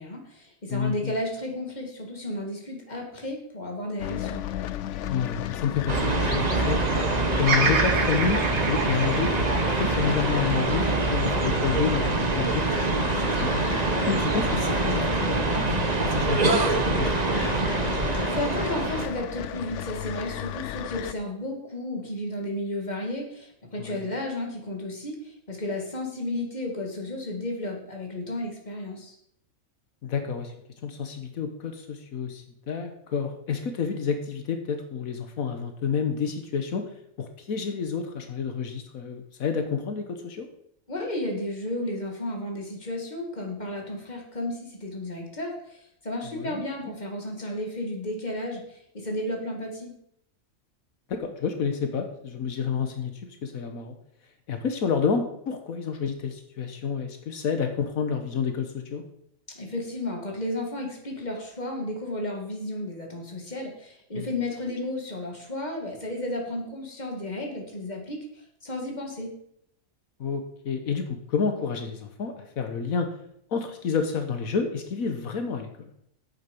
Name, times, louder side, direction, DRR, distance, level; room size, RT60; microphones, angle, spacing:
voice 1, 0.0-4.4 18.3-29.2 40.9-49.9 59.5-69.3, left 1 dB, 30° left, 1 dB, 2.5 m, -33 dB
voice 2, 0.7-1.1 5.1-8.4 8.7-13.6 14.1-17.5 23.8-24.0 30.0-30.5 30.8-36.9 37.2-40.5 46.2-46.6 51.1-54.0 54.5-59.0 64.1-64.3 70.2-73.1 73.5-75.9, left 6 dB, 85° left, 6 dB, 1.6 m, -29 dB
sound 1, 4.0-21.1, left 12 dB, 70° left, 0.8 m, -34 dB
sound 2, 5.9-19.1, right 3 dB, 35° right, 1.1 m, -25 dB
Bird vocalization bird call bird song, 7.4-11.7 12.2-13.0, right 4 dB, 85° right, 2.1 m, -29 dB
10.5 x 8.6 x 5.4 m, 0.71 s
omnidirectional pair, 1.4 m